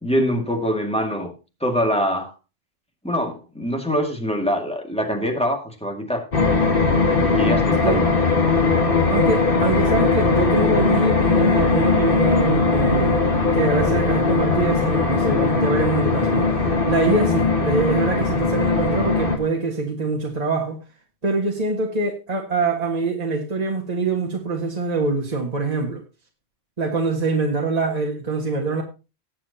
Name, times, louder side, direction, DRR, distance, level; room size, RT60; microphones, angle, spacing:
voice 1, 0.0-1.3 1.6-2.3 3.0-6.3 7.2-8.1, equal, 5° left, 2.1 m, -24 dB
sound 1, 6.3-19.4, left 3 dB, 55° left, 2.0 m, -19 dB
voice 2, 9.1-13.2 13.5-20.8 21.2-26.0 26.8-28.8, right 3 dB, 35° right, 1.8 m, -24 dB
19.5 x 7.7 x 2.9 m
omnidirectional pair, 1.1 m